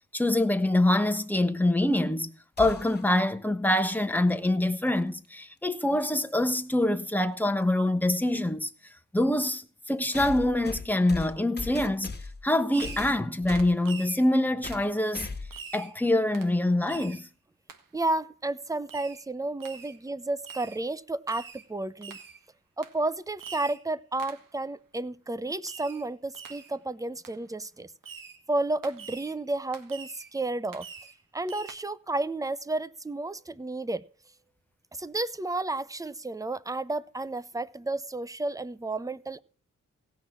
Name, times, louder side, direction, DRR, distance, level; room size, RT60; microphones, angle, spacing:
voice 1, 0.1-2.3 2.6-8.7 9.1-12.1 12.4-15.3 15.7-17.3, left 1 dB, 5° left, 1.3 m, -25 dB
sound 1, 2.6-3.1 5.2-5.3 6.5-6.6 10.1-12.5 12.8-13.7 14.6-14.9 15.1-15.6, left 3 dB, 30° left, 1.8 m, -38 dB
Fireworks, 12.7-13.2 13.5-14.3 14.7-14.9 15.5-15.9 16.3-16.5 16.9-17.2 17.7-17.8 18.9-19.2 19.6-20.0 20.4-20.8 21.3-21.7 22.0-22.4 22.8-23.0 23.4-23.8 24.2-24.5 25.7-26.1 26.3-26.7 27.2-27.4 28.0-28.4 28.8-29.4 29.7-30.3 30.7-31.2 31.5-31.8, right 5 dB, 85° right, 1.6 m, -44 dB
voice 2, 17.9-22.2 22.8-27.9 28.5-30.9 31.3-34.0 34.9-39.4, right 2 dB, 10° right, 0.7 m, -32 dB
17.0 x 6.3 x 8.5 m
cardioid pair, 80°, 32 cm